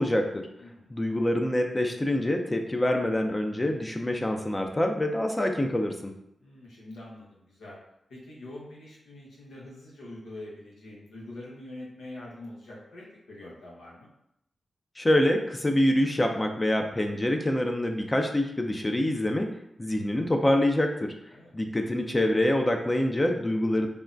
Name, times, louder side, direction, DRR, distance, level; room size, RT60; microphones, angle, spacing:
voice 1, 0.0-0.5 0.9-6.1 15.0-19.5 19.8-21.1 21.5-23.9, left 1 dB, 25° left, 4 dB, 0.4 m, -25 dB
voice 2, 0.6-0.9 6.4-7.8 8.1-14.1 21.3-21.5, left 1 dB, 90° left, -4 dB, 0.8 m, -44 dB
3.4 x 2.2 x 2.5 m, 0.78 s
cardioid pair, 50°, 0 cm